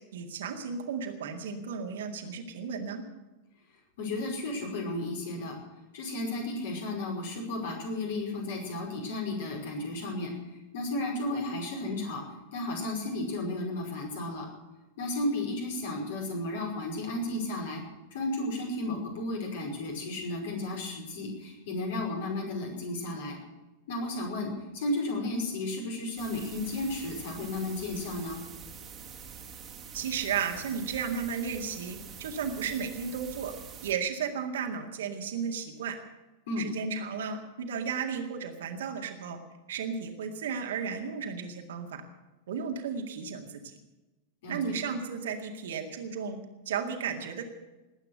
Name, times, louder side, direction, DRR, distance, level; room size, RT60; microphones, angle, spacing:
voice 1, 0.1-3.0 29.9-33.5 33.8-36.0 36.6-39.4 39.7-42.0 42.5-43.7 44.5-46.4 46.7-47.4, right 6 dB, 60° right, 4 dB, 2.0 m, -34 dB
voice 2, 4.0-5.6 5.9-12.2 12.5-14.5 15.0-17.8 18.1-23.4 23.9-28.4 36.5-36.7 44.4-44.6, left 2 dB, 55° left, 1 dB, 5.2 m, -33 dB
sound 1, 26.2-33.9, right 6 dB, 25° right, 2.1 m, -46 dB
19.5 x 9.0 x 7.9 m, 1.1 s
figure-of-eight pair, 90°, 0 cm